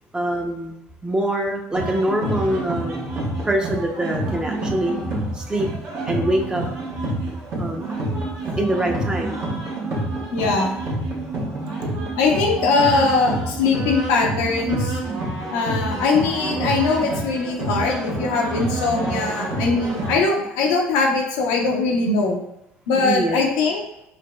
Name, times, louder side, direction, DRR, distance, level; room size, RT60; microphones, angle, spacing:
voice 1, 0.1-0.8 1.0-3.1 3.4-4.9 5.3-5.7 6.0-6.6 7.6-7.9 8.6-9.4 22.9-23.4, right 1 dB, 15° right, 1 dB, 0.6 m, -24 dB
sound 1, 1.7-20.2, right 2 dB, 55° right, 1.0 m, -28 dB
voice 2, 7.6-8.0 10.3-10.7 12.2-15.0 15.5-22.4 22.9-23.8, left 4 dB, 90° left, 0 dB, 0.7 m, -21 dB
4.9 x 2.0 x 2.2 m, 0.85 s
supercardioid pair, 85°, 5 cm